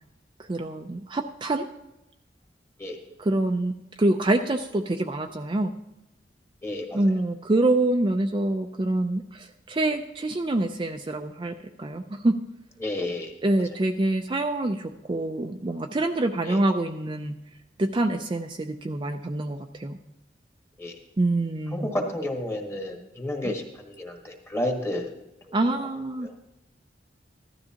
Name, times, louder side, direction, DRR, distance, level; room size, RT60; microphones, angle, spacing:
voice 1, 0.5-1.6 3.2-5.7 6.9-12.3 13.4-17.4 17.8-20.0 21.2-21.9 23.4-23.5 25.5-26.3, right 2 dB, 25° right, 4 dB, 0.4 m, -26 dB
voice 2, 6.6-7.0 12.8-13.3 16.4-16.6 20.8-21.0 21.7-25.1 25.5-25.9 26.2-26.3, left 1 dB, 15° left, 2 dB, 1.4 m, -31 dB
15.0 x 12.5 x 2.9 m, 0.91 s
head